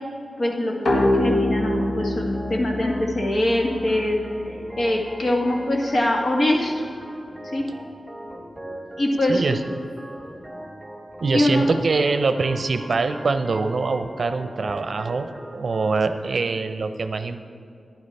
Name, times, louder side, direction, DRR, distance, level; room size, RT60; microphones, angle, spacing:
voice 1, 0.4-4.2 4.8-6.7 7.5-7.7 9.0-9.4 11.3-11.7, left 1 dB, 55° left, 0 dB, 1.6 m, -23 dB
sound 1, 0.9-4.3, left 1 dB, 85° left, 1.6 m, -25 dB
Organ, 0.9-15.9, right 1 dB, 5° left, 2.7 m, -40 dB
voice 2, 9.3-9.8 11.2-17.5, right 4 dB, 65° right, 9 dB, 0.6 m, -24 dB
11.5 x 10.0 x 4.2 m, 2.6 s
wide cardioid pair, 90°, 0 cm